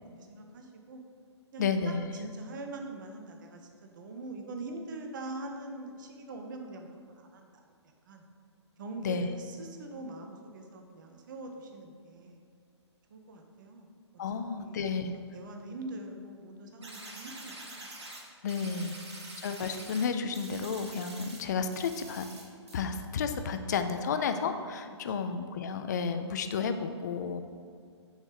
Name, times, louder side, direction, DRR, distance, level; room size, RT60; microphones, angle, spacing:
voice 1, 0.2-1.0 1.5-7.6 8.1-8.3 8.8-12.4 13.1-13.9 14.6-17.9 18.8-19.0, right 2 dB, 40° right, 3 dB, 0.7 m, -43 dB
voice 2, 1.6-2.0 9.0-9.3 14.2-15.1 18.4-19.0 19.4-22.3 22.7-27.4, left 5 dB, 40° left, 8 dB, 0.4 m, -32 dB
sound 1, 16.8-18.2 18.5-20.1 20.3-21.4 21.7-22.4 22.7-22.8, right 2 dB, 65° right, 1.3 m, -46 dB
6.3 x 3.1 x 5.1 m, 2.2 s
figure-of-eight pair, 130°, 15 cm